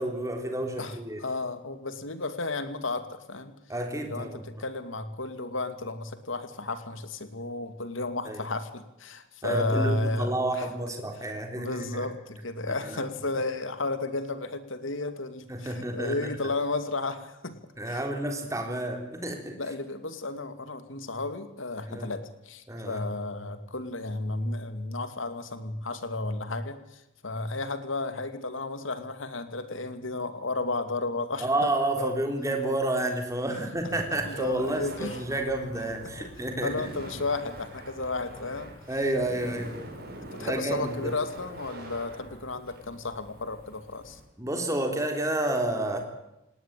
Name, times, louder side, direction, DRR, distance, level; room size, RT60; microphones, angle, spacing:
voice 1, 0.0-1.2 3.7-4.4 8.3-8.4 9.4-12.1 12.7-13.0 15.5-16.5 17.8-19.6 21.9-22.1 22.7-23.0 31.4-36.7 38.9-39.8 40.4-41.1 44.4-46.0, right 1 dB, 15° right, 4 dB, 3.8 m, -30 dB
voice 2, 0.8-3.5 4.0-10.7 11.5-17.6 17.9-18.0 19.6-32.1 34.2-35.2 36.0-36.1 36.6-38.7 40.3-44.2, left 2 dB, 80° left, 10 dB, 2.5 m, -33 dB
Laughter, 33.7-44.2, right 1 dB, 50° right, 6.6 m, -45 dB
19.0 x 19.0 x 9.1 m, 0.89 s
head